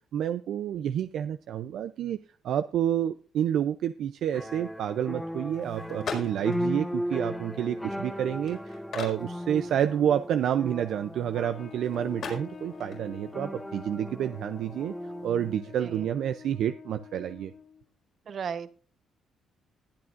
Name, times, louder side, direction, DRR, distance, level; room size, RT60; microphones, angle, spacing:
voice 1, 0.1-2.2 2.4-14.9 15.2-17.5, right 10 dB, 75° right, 9 dB, 0.5 m, -29 dB
sound 1, 4.3-15.6, equal, 5° left, 1.2 m, -37 dB
sound 2, 5.5-16.0, left 5 dB, 65° left, 5.3 m, -44 dB
Trumpet, 11.3-17.9, left 6 dB, 50° left, 1.3 m, -47 dB
voice 2, 18.3-18.7, right 7 dB, 55° right, 11 dB, 1.0 m, -35 dB
20.0 x 8.7 x 2.6 m, 0.38 s
cardioid pair, 90°, 0 cm